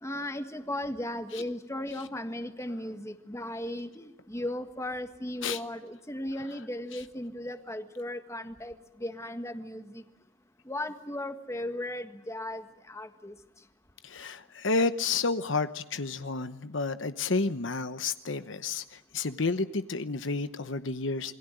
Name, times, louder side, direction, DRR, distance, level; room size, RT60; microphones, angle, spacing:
voice 1, 0.0-10.0 10.6-13.3, left 1 dB, 15° left, 8 dB, 1.6 m, -36 dB
voice 2, 14.0-18.8 19.1-21.4, left 3 dB, 65° left, 11 dB, 1.0 m, -30 dB
28.0 x 21.5 x 9.1 m, 0.86 s
head